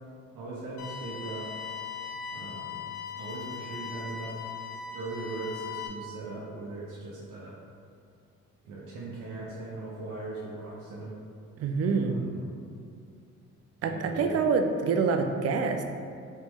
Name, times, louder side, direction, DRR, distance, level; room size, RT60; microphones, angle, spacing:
voice 1, 0.3-1.5 2.3-2.8 3.2-4.5 4.9-7.5 8.6-11.1 12.0-12.6 13.8-14.4, right 2 dB, 80° right, -7 dB, 0.8 m, -39 dB
sound 1, 0.8-5.9, left 6 dB, 90° left, 0.7 m, -39 dB
voice 2, 11.6-12.3 13.8-15.8, right 5 dB, 55° right, 6 dB, 0.5 m, -26 dB
4.2 x 3.0 x 3.5 m, 2.3 s
cardioid pair, 90°, 30 cm